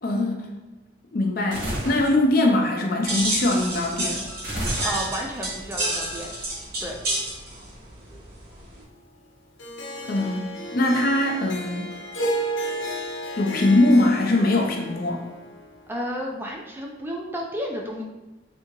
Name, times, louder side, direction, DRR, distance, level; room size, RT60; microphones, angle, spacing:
voice 1, 0.0-0.5 1.1-4.2 10.0-12.0 13.3-15.2, left 2 dB, 50° left, 2 dB, 0.5 m, -22 dB
sound 1, 1.5-2.1 4.4-5.4, equal, 65° right, 1.5 m, -30 dB
sound 2, 3.0-8.8, right 1 dB, 50° right, 1.0 m, -30 dB
voice 2, 4.8-6.3 6.8-7.0 15.9-18.0, equal, 10° right, 0 dB, 0.3 m, -31 dB
Harp, 9.6-16.0, right 1 dB, 90° left, 0.7 m, -32 dB
3.4 x 2.8 x 2.9 m, 1.1 s
head